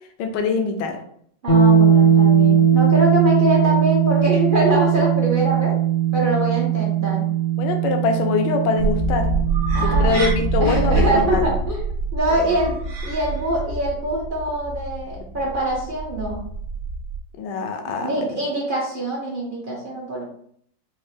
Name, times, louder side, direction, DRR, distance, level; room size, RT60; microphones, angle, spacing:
voice 1, 0.2-1.0 7.6-9.3 9.8-11.5 17.4-18.3, left 5 dB, 75° left, 5 dB, 1.2 m, -23 dB
voice 2, 1.4-5.7 6.1-7.2 9.7-10.2 10.6-11.8 12.1-12.8 13.1-16.4 17.9-20.2, right 1 dB, 55° right, -4 dB, 0.5 m, -24 dB
sound 1, 1.5-11.3, right 8 dB, 50° left, 0.8 m, -19 dB
sound 2, 8.8-17.2, right 3 dB, 70° right, 1.2 m, -25 dB
5.2 x 2.1 x 3.3 m, 0.65 s
omnidirectional pair, 2.1 m